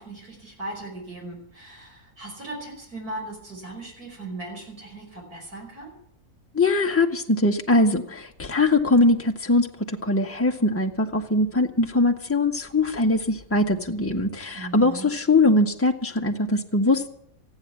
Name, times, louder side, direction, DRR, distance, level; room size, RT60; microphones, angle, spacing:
voice 1, 0.0-5.9 14.5-15.1, right 2 dB, 75° right, -1 dB, 5.8 m, -38 dB
voice 2, 6.5-17.1, left 2 dB, 10° left, 2 dB, 1.3 m, -22 dB
15.5 x 9.6 x 9.5 m, 0.67 s
omnidirectional pair, 1.6 m